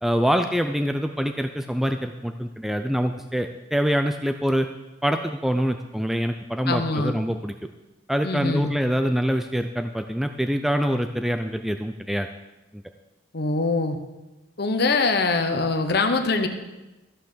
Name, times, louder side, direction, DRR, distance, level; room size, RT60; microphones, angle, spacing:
voice 1, 0.0-4.7 5.0-7.5 8.1-12.3 12.7-12.8, equal, ahead, 6 dB, 0.4 m, -25 dB
voice 2, 6.7-7.1 8.2-8.7 13.3-14.0 14.6-16.5, left 3 dB, 55° left, 6 dB, 0.9 m, -23 dB
13.5 x 5.9 x 6.7 m, 1.0 s
head